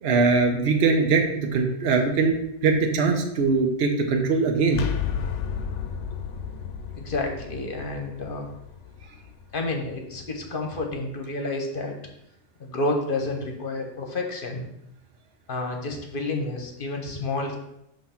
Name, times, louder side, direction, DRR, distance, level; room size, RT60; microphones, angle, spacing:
voice 1, 0.0-2.3 2.6-4.8, right 4 dB, 60° right, 3 dB, 1.0 m, -21 dB
sound 1, 4.7-10.4, left 8 dB, 85° left, 0.9 m, -33 dB
voice 2, 6.9-8.5 9.5-12.0 12.6-14.7 15.5-17.6, left 2 dB, 50° left, 3 dB, 1.1 m, -30 dB
7.6 x 3.1 x 5.7 m, 0.81 s
omnidirectional pair, 1.2 m